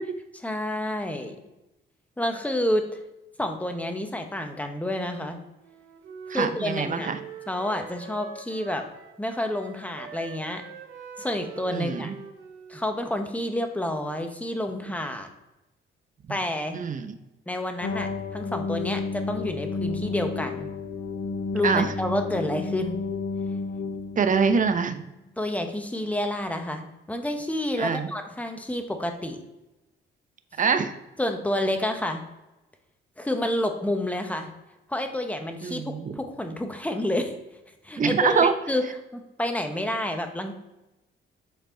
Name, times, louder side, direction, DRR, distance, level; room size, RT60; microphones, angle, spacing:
voice 1, 0.4-1.4 2.2-3.0 3.4-5.4 6.3-7.1 7.5-8.8 9.2-10.6 11.2-12.1 12.7-15.3 16.3-16.8 17.5-20.7 21.5-23.0 25.4-29.4 31.2-32.2 33.2-34.5 34.9-35.8 36.1-37.3 37.8-38.8 39.1-40.5, left 1 dB, 5° left, 5 dB, 1.1 m, -29 dB
Wind instrument woodwind instrument, 5.6-9.2 9.5-13.4, right 6 dB, 80° right, 1.1 m, -44 dB
voice 2, 6.3-7.2 11.7-12.1 16.7-17.1 21.6-21.9 24.2-25.0 27.8-28.1 30.6-30.9 35.6-36.2 38.0-38.5, right 5 dB, 40° right, 8 dB, 0.8 m, -24 dB
sound 1, 17.8-24.9, left 4 dB, 80° left, 1.1 m, -32 dB
7.7 x 4.4 x 3.9 m, 0.98 s
cardioid pair, 90°, 20 cm